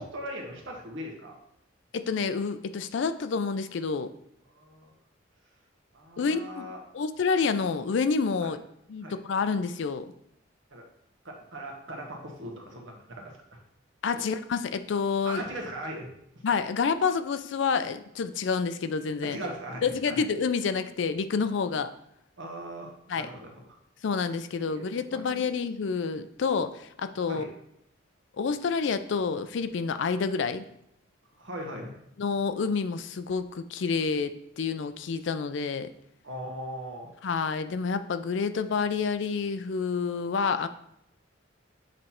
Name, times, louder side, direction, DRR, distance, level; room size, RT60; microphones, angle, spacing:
voice 1, 0.0-1.3 4.5-4.9 5.9-6.8 8.4-8.5 9.0-9.1 10.7-10.8 11.2-13.4 15.2-16.1 16.3-16.4 19.2-20.2 22.4-23.8 24.7-24.8 25.1-25.5 27.3-27.5 31.4-31.9 36.2-37.1, right 1 dB, 75° right, 0 dB, 1.4 m, -39 dB
voice 2, 1.9-4.1 6.2-6.7 6.9-8.6 8.9-10.1 14.0-15.4 16.4-19.4 19.8-21.9 23.1-23.3 24.0-27.5 28.4-30.7 32.2-35.9 37.2-40.7, left 5 dB, 65° left, 11 dB, 0.4 m, -28 dB
7.5 x 3.2 x 4.3 m, 0.75 s
head